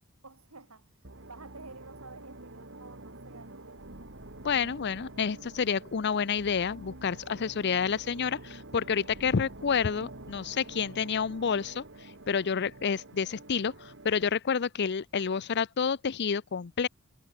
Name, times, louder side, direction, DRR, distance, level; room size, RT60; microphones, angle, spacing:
voice 1, 0.2-0.9 1.3-3.9, right 3 dB, 85° right, 4.8 m, -50 dB
sound 1, 1.0-14.4, right 2 dB, 60° right, 3.0 m, -48 dB
voice 2, 4.4-11.8 12.3-16.9, left 6 dB, 50° left, 0.5 m, -29 dB
head